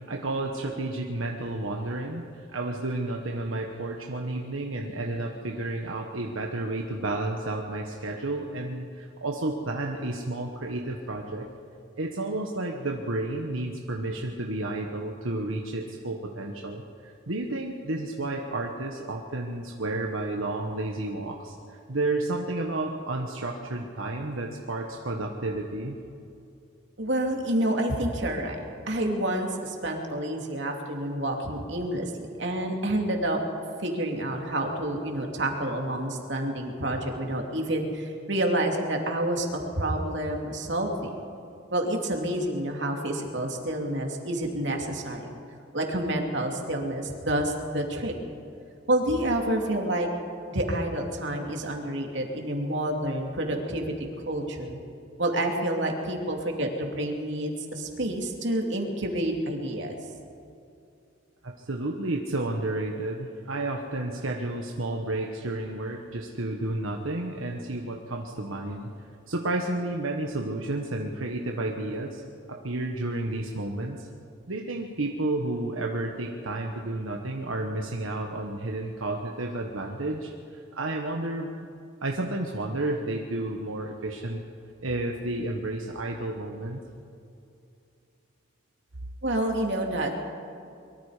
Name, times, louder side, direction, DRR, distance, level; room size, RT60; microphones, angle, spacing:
voice 1, 0.0-11.5 12.0-26.0 61.4-68.9 69.3-72.2 72.5-74.1 74.5-81.7 82.0-84.4 84.8-86.8, right 2 dB, 85° right, 1 dB, 1.4 m, -31 dB
voice 2, 27.0-32.1 32.4-33.4 33.8-39.5 39.7-41.1 41.7-45.3 45.7-48.1 48.9-50.1 50.5-53.9 54.2-54.8 55.2-60.0 89.2-90.1, right 1 dB, 60° right, 2 dB, 2.9 m, -28 dB
23.5 x 23.0 x 5.1 m, 2.6 s
head